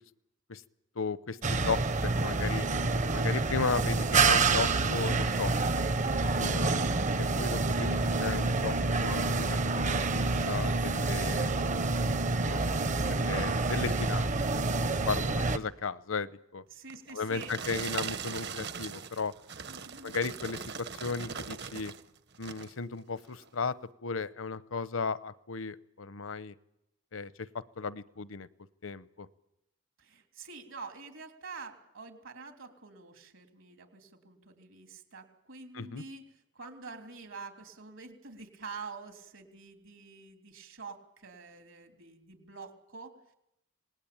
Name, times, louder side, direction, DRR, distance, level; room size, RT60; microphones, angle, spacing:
voice 1, 1.0-2.7 3.1-6.7 7.2-11.5 12.4-12.8 13.1-16.6 17.1-19.3 20.0-21.9 22.4-23.7 24.0-26.5 27.1-27.5 27.8-28.5 28.8-29.3 35.7-36.0, left 4 dB, 75° left, 17 dB, 0.8 m, -36 dB
sound 1, 1.4-15.6, right 3 dB, 35° right, 0.8 m, -28 dB
voice 2, 16.7-17.6 19.7-20.2 30.0-43.2, right 4 dB, 70° right, 6 dB, 3.4 m, -47 dB
sound 2, 16.9-22.0 22.3-22.8 23.3-23.5, right 6 dB, 55° right, 1.2 m, -40 dB
26.5 x 19.5 x 8.8 m, 0.83 s
head